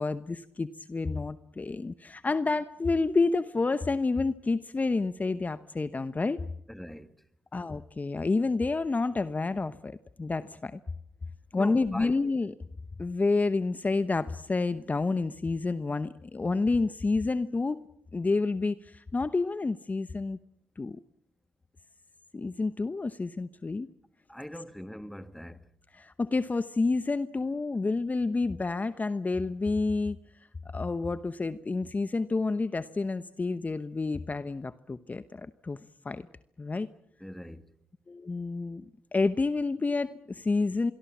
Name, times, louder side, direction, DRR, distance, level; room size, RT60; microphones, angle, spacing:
voice 1, 0.0-6.4 7.5-10.8 11.5-12.5 13.0-17.8 18.1-20.4 20.8-21.0 22.3-23.9 25.9-30.2 30.7-36.3 36.6-36.9 38.1-38.8 39.1-40.9, left 3 dB, 30° left, 0.9 m, -29 dB
voice 2, 6.7-7.2 11.6-12.2 24.3-25.7 37.2-37.7, equal, 5° left, 1.7 m, -42 dB
26.0 x 22.5 x 7.3 m
hypercardioid pair, 45°, 5 cm